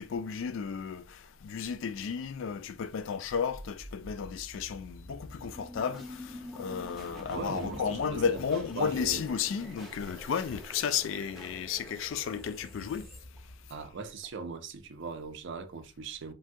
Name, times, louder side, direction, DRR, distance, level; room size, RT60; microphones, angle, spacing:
voice 1, 0.0-13.0, left 6 dB, 60° left, 0.3 m, -33 dB
sound 1, 3.5-14.3, equal, ahead, 0.5 m, -46 dB
voice 2, 7.3-9.2 13.7-16.3, right 4 dB, 55° right, 0.4 m, -39 dB
3.3 x 2.2 x 2.6 m
head